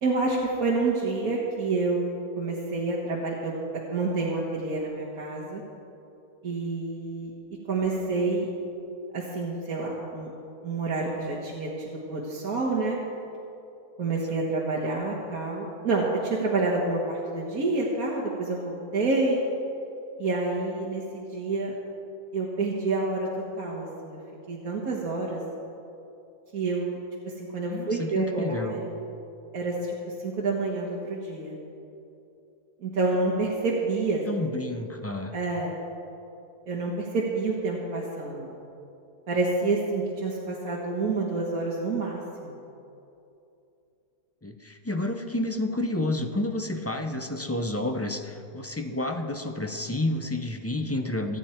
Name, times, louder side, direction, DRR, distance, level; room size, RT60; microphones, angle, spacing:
voice 1, 0.0-5.6 6.4-7.3 7.7-8.5 9.1-10.3 10.6-13.0 14.0-19.5 20.2-21.7 22.3-23.3 23.6-24.2 24.5-25.4 26.5-27.0 27.3-29.0 29.5-31.6 32.8-34.2 35.3-35.8 36.7-38.6 39.3-42.6, right 3 dB, 70° right, -4 dB, 2.0 m, -28 dB
voice 2, 27.6-28.7 34.3-35.3 44.4-51.4, left 1 dB, 15° left, 5 dB, 0.4 m, -30 dB
26.5 x 9.0 x 4.4 m, 2.8 s
omnidirectional pair, 1.6 m